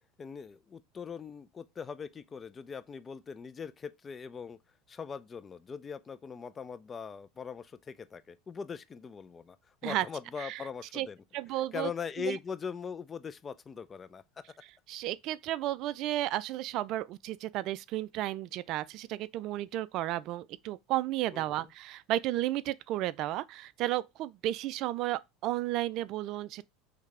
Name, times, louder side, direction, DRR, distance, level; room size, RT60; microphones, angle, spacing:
voice 1, 0.2-4.6 4.9-9.6 9.8-11.2 11.7-14.4 21.3-21.7, left 6 dB, 25° left, 0.5 m, -41 dB
voice 2, 11.3-11.9 12.2-12.4 14.9-26.7, right 15 dB, 55° right, 0.4 m, -33 dB
4.9 x 3.3 x 3.2 m
hypercardioid pair, 95°, 0 cm